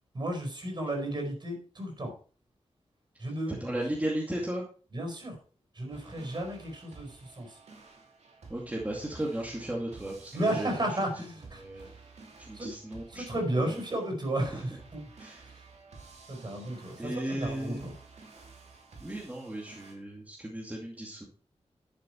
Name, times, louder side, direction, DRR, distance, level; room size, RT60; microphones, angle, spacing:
voice 1, 0.1-2.1 3.2-3.8 4.9-5.3 5.7-7.6 10.3-11.9 12.5-12.7 13.1-15.0 16.3-17.9, right 1 dB, 45° right, 3 dB, 4.8 m, -33 dB
voice 2, 3.5-4.6 8.5-11.0 11.5-11.9 12.4-13.3 13.6-13.8 14.5-14.6 15.1-15.4 17.0-17.9 19.0-21.2, right 1 dB, 15° right, -2 dB, 2.3 m, -35 dB
sound 1, 5.9-19.9, right 4 dB, 80° right, 2.7 m, -53 dB
11.5 x 7.5 x 4.5 m, 0.39 s
wide cardioid pair, 135°, 11 cm